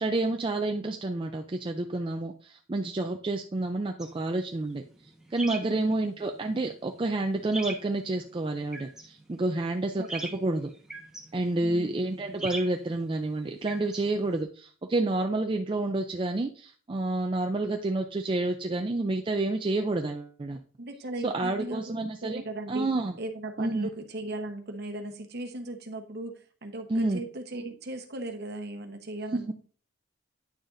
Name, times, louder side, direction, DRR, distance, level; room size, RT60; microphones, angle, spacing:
voice 1, 0.0-4.8 5.3-10.7 11.3-20.6 21.2-22.4 22.7-23.2 23.6-23.9 26.9-27.2 29.3-29.4, right 2 dB, 25° right, 4 dB, 0.4 m, -29 dB
sound 1, 4.0-14.4, right 2 dB, 5° right, 1.2 m, -44 dB
voice 2, 10.0-10.4 11.6-11.9 20.8-22.9 23.2-29.5, right 1 dB, 50° right, 5 dB, 1.0 m, -37 dB
9.5 x 6.4 x 2.5 m, 0.42 s
head